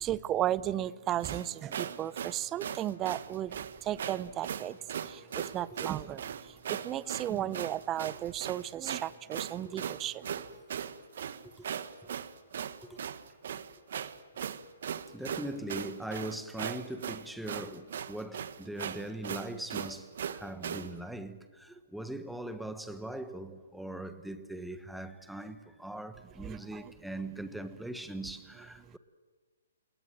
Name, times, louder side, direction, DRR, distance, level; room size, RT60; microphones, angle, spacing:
voice 1, 0.0-3.5 3.8-4.8 5.1-6.3 6.7-10.3 26.4-26.9, right 12 dB, 15° right, 0.6 m, -34 dB
sound 1, 1.2-20.9, right 8 dB, 55° right, 1.6 m, -38 dB
voice 2, 15.1-29.0, right 1 dB, ahead, 1.3 m, -41 dB
28.0 x 20.0 x 7.6 m
hypercardioid pair, 160°, 0 cm